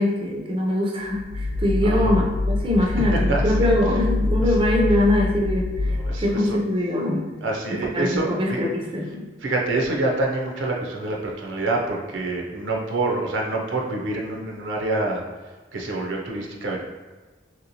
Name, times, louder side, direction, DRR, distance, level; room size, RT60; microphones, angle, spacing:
voice 1, 0.0-5.7 6.2-7.2 7.9-9.2, left 1 dB, 25° right, -1 dB, 0.4 m, -22 dB
sound 1, 1.0-6.5, left 2 dB, 85° left, 0.4 m, -25 dB
voice 2, 1.8-2.1 2.8-4.0 4.4-4.6 5.9-6.6 7.4-8.6 9.4-15.2 15.7-16.8, right 2 dB, 85° right, 0 dB, 0.5 m, -27 dB
3.1 x 2.9 x 2.6 m, 1.3 s
head